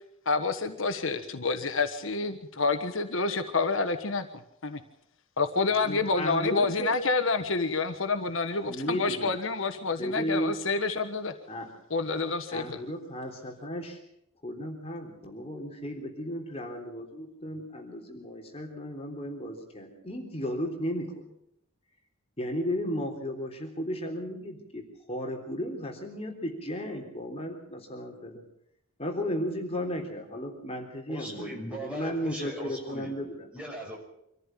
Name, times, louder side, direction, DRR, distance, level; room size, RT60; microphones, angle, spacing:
voice 1, 0.2-4.3 4.6-4.8 5.4-11.3 11.9-12.8, left 4 dB, 65° left, 8 dB, 1.3 m, -28 dB
voice 2, 5.7-7.0 8.6-9.4 10.0-10.6 11.5-11.7 12.5-14.0 14.4-21.3 22.4-28.4 29.0-33.5, equal, 30° left, 2 dB, 3.5 m, -34 dB
voice 3, 31.1-33.1 33.5-34.0, equal, 5° right, -1 dB, 6.0 m, -39 dB
25.0 x 14.5 x 7.4 m, 0.78 s
head